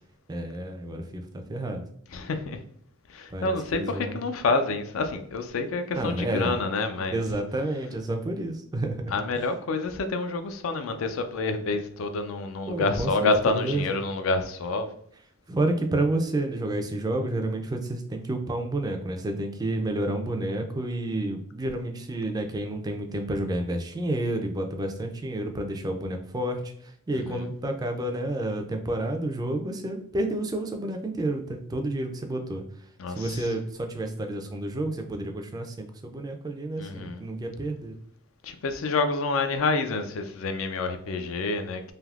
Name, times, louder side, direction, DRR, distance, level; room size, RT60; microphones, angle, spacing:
voice 1, 0.3-1.8 3.3-4.2 5.9-6.5 7.1-9.4 12.7-13.9 15.5-32.6 33.1-37.9, right 1 dB, 20° right, 0.3 m, -30 dB
voice 2, 2.1-2.6 3.1-7.2 9.1-14.9 27.3-27.5 33.0-33.5 36.8-37.2 38.4-41.9, left 3 dB, 70° left, 0.4 m, -28 dB
3.4 x 2.7 x 2.4 m
head